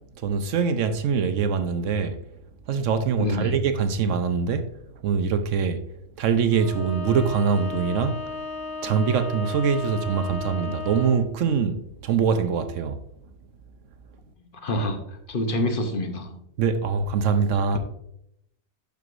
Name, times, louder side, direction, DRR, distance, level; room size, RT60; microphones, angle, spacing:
voice 1, 0.2-2.2 2.7-4.7 5.0-5.8 6.2-8.2 8.8-13.0 16.6-17.8, right 6 dB, 65° right, 0.8 m, -23 dB
voice 2, 3.2-3.5 14.6-16.4, left 1 dB, 45° left, 0.8 m, -27 dB
Bowed string instrument, 6.5-11.3, left 3 dB, 75° left, 2.7 m, -35 dB
12.0 x 4.7 x 2.5 m
omnidirectional pair, 1.7 m